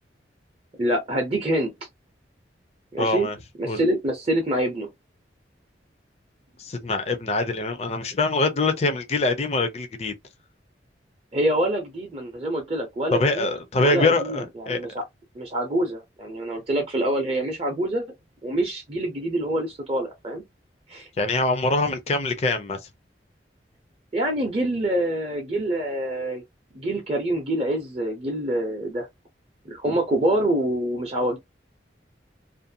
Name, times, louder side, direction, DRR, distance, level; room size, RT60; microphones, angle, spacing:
voice 1, 0.8-1.7 2.9-3.3 3.6-4.9 11.3-13.5 13.8-15.0 15.3-18.1 18.4-20.4 20.9-21.1 24.1-26.4 26.7-29.1 29.7-31.4, right 1 dB, 35° right, 0.6 m, -26 dB
voice 2, 3.0-3.4 3.6-3.8 6.6-10.1 13.1-14.8 21.2-22.8, left 3 dB, 35° left, 0.4 m, -24 dB
2.5 x 2.2 x 2.7 m
head